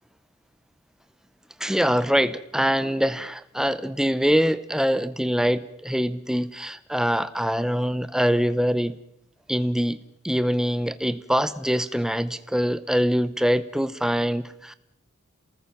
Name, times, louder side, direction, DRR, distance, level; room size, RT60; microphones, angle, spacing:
voice 1, 1.6-9.0 9.5-10.0 10.2-14.7, equal, 5° right, 0.7 m, -24 dB
28.0 x 19.5 x 5.9 m
head